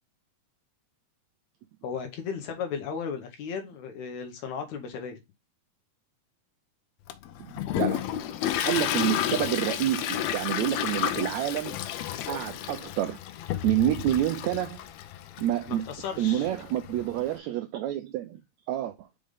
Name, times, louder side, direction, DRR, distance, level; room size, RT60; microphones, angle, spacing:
voice 1, 1.8-5.2 15.7-16.5, left 6 dB, 70° left, 2.1 m, -35 dB
Toilet flush, 7.1-17.3, left 11 dB, 85° left, 1.5 m, -32 dB
voice 2, 7.4-8.1 8.6-11.8 12.3-13.2 13.6-14.8 15.4-15.8 16.2-18.4 18.7-19.1, right 12 dB, 85° right, 1.6 m, -28 dB
5.3 x 5.1 x 3.5 m
omnidirectional pair, 3.7 m